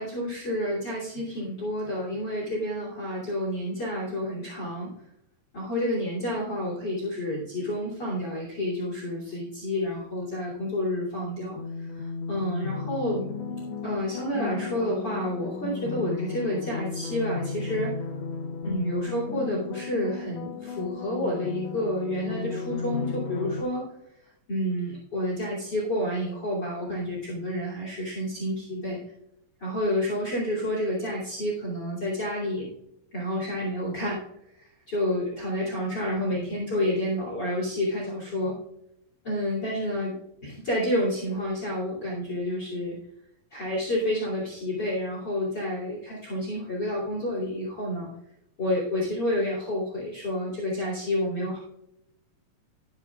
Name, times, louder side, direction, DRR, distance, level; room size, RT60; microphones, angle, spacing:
voice 1, 0.0-4.9 5.5-13.3 13.8-17.9 18.6-23.9 24.5-29.0 29.6-32.7 33.1-34.2 34.6-38.5 39.2-40.1 40.4-43.0 43.5-48.1 48.6-51.6, left 1 dB, 30° left, -5 dB, 3.0 m, -29 dB
sound 1, 11.6-23.6, left 5 dB, 80° left, 1.4 m, -34 dB
19.5 x 7.0 x 2.4 m, 0.83 s
omnidirectional pair, 4.1 m